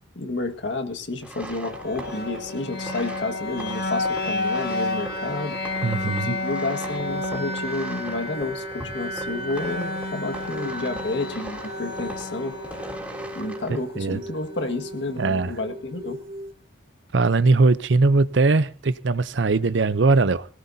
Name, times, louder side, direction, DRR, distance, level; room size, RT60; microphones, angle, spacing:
voice 1, 0.2-5.6 6.1-12.5 13.3-16.2, left 2 dB, 75° left, 1.8 m, -30 dB
sound 1, 1.2-13.8, right 1 dB, 5° right, 3.8 m, -40 dB
sound 2, 1.6-15.6, left 2 dB, 55° left, 2.3 m, -31 dB
voice 2, 5.8-6.3 13.7-14.2 15.2-15.5 17.1-20.5, right 3 dB, 80° right, 0.6 m, -20 dB
sound 3, 8.3-16.5, right 1 dB, 50° right, 1.3 m, -40 dB
22.5 x 17.0 x 2.7 m
head